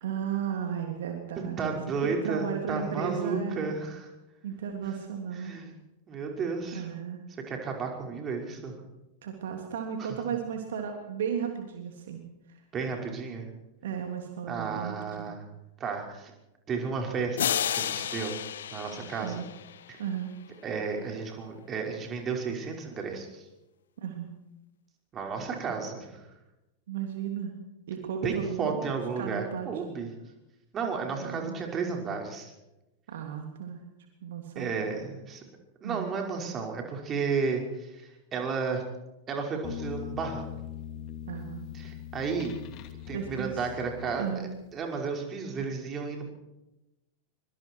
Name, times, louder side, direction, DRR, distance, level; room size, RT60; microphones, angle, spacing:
voice 1, 0.0-1.8 2.2-3.7 4.4-5.6 6.7-7.2 9.2-12.2 12.5-12.6 13.8-15.3 19.2-19.5 20.0-20.3 24.0-24.3 26.9-27.5 27.9-28.8 29.2-29.7 31.2-31.6 33.1-33.8 34.2-34.7 35.8-36.1 41.3-41.6 43.1-43.6 44.2-44.5, right 7 dB, 60° right, 3 dB, 3.2 m, -34 dB
voice 2, 1.6-4.1 5.3-5.7 6.1-6.9 7.5-8.8 10.0-10.2 12.7-13.5 14.5-15.4 15.8-16.3 16.7-18.4 18.7-19.4 20.6-23.5 25.1-26.2 28.2-30.1 30.7-32.5 34.6-35.4 35.8-38.8 39.3-40.5 41.7-42.6 43.1-46.3, right 5 dB, 25° right, 1 dB, 5.6 m, -33 dB
sound 1, 17.4-20.0, left 10 dB, 65° left, 0.8 m, -32 dB
sound 2, 39.6-44.6, left 10 dB, 40° left, 2.5 m, -41 dB
24.5 x 24.0 x 4.8 m, 0.93 s
figure-of-eight pair, 90°, 0 cm